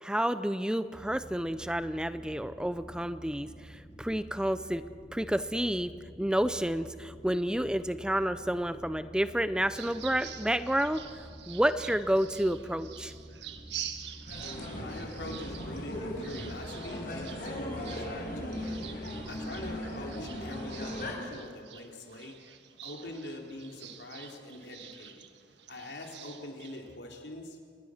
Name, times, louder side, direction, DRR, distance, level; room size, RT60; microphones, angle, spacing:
voice 1, 0.0-4.9 5.1-5.9 6.2-13.1, right 1 dB, 5° right, 12 dB, 0.5 m, -30 dB
sound 1, 0.9-19.8, equal, 30° left, 2.1 m, -50 dB
sound 2, 9.7-27.0, right 10 dB, 80° right, 1.5 m, -47 dB
sound 3, 14.3-21.1, left 1 dB, 55° left, 5.2 m, -38 dB
voice 2, 14.7-22.4 22.8-25.3 25.7-27.6, left 1 dB, 75° left, 1 dB, 3.6 m, -44 dB
27.0 x 20.5 x 6.5 m, 2.1 s
head